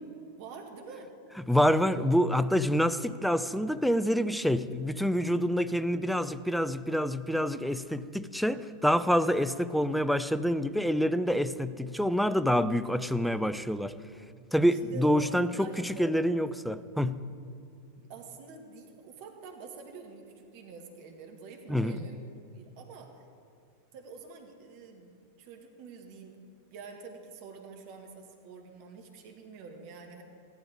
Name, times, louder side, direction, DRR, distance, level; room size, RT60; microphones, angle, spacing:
voice 1, 0.4-1.2 14.6-16.1 18.0-22.2 22.5-23.3 23.9-26.4 26.7-30.2, right 4 dB, 45° right, 1.9 m, -47 dB
voice 2, 1.5-13.9 14.5-17.2 21.7-22.0, equal, ahead, 0.5 m, -27 dB
15.5 x 12.0 x 5.0 m
figure-of-eight pair, 90°, 0 cm